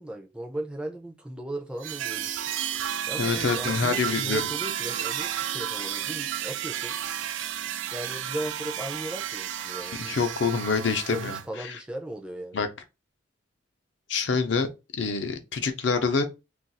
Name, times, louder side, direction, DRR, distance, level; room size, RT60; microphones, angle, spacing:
voice 1, 0.0-2.4 3.1-7.0 7.9-10.2 11.1-12.6, right 1 dB, 5° right, 0.3 m, -37 dB
sound 1, 1.8-11.4, right 10 dB, 80° right, 0.3 m, -32 dB
voice 2, 3.2-4.4 10.0-11.8 12.5-12.7 14.1-14.7 15.0-16.3, left 5 dB, 70° left, 0.5 m, -26 dB
2.4 x 2.3 x 4.0 m
head